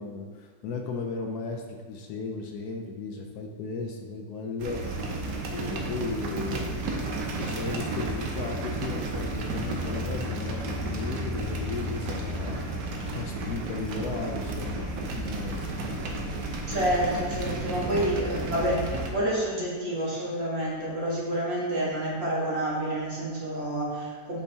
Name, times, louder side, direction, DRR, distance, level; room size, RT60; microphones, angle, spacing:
voice 1, 0.0-5.2 5.5-6.8 7.4-12.6 13.2-15.7, left 4 dB, 70° left, 2 dB, 1.1 m, -35 dB
sound 1, 4.6-19.1, right 2 dB, 80° right, 1.4 m, -32 dB
voice 2, 16.7-24.4, right 1 dB, 40° right, -6 dB, 1.5 m, -29 dB
6.9 x 5.6 x 2.7 m, 1.5 s
omnidirectional pair, 1.8 m